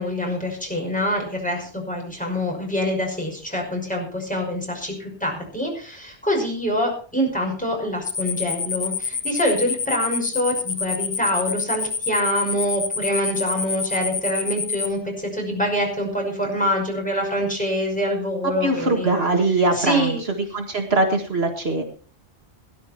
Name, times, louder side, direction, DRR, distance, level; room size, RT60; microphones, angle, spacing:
voice 1, 0.0-19.1 19.7-20.2, equal, 5° left, -1 dB, 5.7 m, -25 dB
sound 1, 8.0-14.9, left 5 dB, 45° left, 1.4 m, -27 dB
voice 2, 18.6-20.2 20.5-21.8, right 2 dB, 65° right, 4 dB, 2.0 m, -21 dB
18.0 x 11.5 x 4.4 m, 0.40 s
omnidirectional pair, 1.1 m